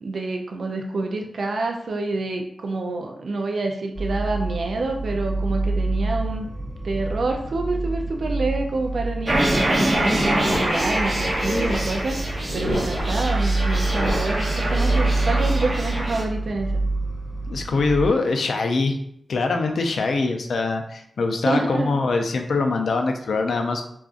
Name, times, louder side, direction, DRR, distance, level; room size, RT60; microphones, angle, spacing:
voice 1, 0.0-6.4 6.8-12.2 12.5-16.8 21.4-22.0, right 2 dB, 70° right, 2 dB, 0.4 m, -27 dB
sound 1, 3.9-18.1, right 2 dB, 15° right, 0.9 m, -27 dB
sound 2, 9.2-16.2, right 1 dB, 40° right, 0.7 m, -25 dB
sound 3, 9.9-15.1, left 1 dB, 45° left, 0.8 m, -31 dB
voice 2, 17.5-19.0 19.3-23.9, left 3 dB, 80° left, 4 dB, 0.4 m, -23 dB
3.7 x 2.4 x 2.4 m, 0.70 s
wide cardioid pair, 105°, 0 cm